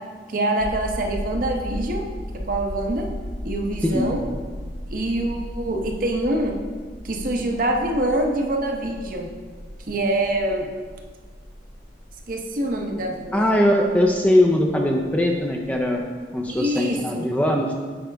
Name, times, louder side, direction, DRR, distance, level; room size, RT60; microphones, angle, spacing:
voice 1, 0.3-2.0 2.5-3.1 3.4-4.2 4.9-6.5 7.0-9.3 9.9-10.7 12.3-13.5 16.5-17.3, right 1 dB, 50° right, 2 dB, 0.8 m, -25 dB
sound 1, 0.6-16.6 16.9-17.0, equal, 55° left, 0.7 m, -36 dB
voice 2, 3.8-4.1 13.3-16.0 16.3-17.7, left 1 dB, 10° left, 1 dB, 0.4 m, -20 dB
7.8 x 5.0 x 3.4 m, 1.5 s
head